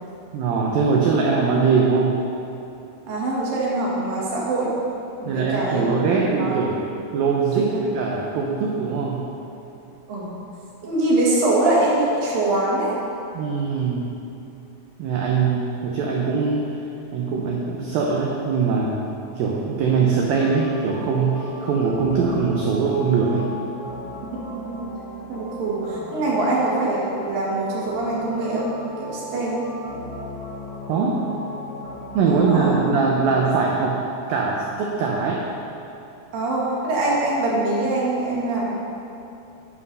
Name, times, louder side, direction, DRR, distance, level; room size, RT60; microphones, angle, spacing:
voice 1, 0.3-2.2 5.3-6.9 7.1-9.3 13.3-14.2 15.0-16.8 17.1-19.0 19.4-23.5 30.9-31.3 32.1-35.5, right 5 dB, 90° right, -1 dB, 2.0 m, -22 dB
voice 2, 3.1-4.7 5.2-5.9 6.4-6.5 7.6-7.8 10.1-10.3 10.8-13.0 24.7-24.8 25.3-28.7 29.0-29.6 32.3-32.8 36.3-38.7, right 2 dB, 60° right, -6 dB, 3.3 m, -23 dB
sound 1, 19.9-32.8, left 1 dB, 60° left, 2.1 m, -37 dB
8.4 x 7.5 x 5.4 m, 2.8 s
omnidirectional pair, 5.1 m